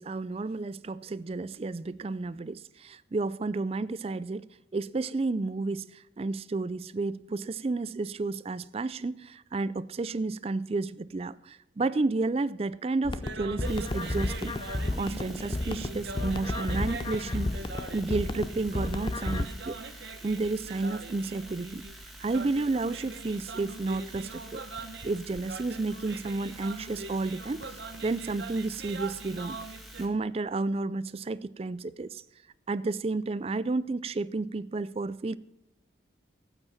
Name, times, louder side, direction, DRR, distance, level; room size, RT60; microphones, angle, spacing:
voice 1, 0.0-4.4 4.7-14.5 14.9-17.6 17.9-21.8 22.2-24.6 25.0-27.7 28.0-29.6 30.0-32.2 32.7-35.4, right 3 dB, 30° right, 0.4 m, -31 dB
sound 1, 13.0-19.4, left 2 dB, 25° left, 0.5 m, -32 dB
sound 2, 13.1-30.0, right 3 dB, 65° right, 1.0 m, -42 dB
sound 3, 13.6-30.1, right 1 dB, ahead, 1.8 m, -48 dB
13.5 x 9.0 x 5.7 m
head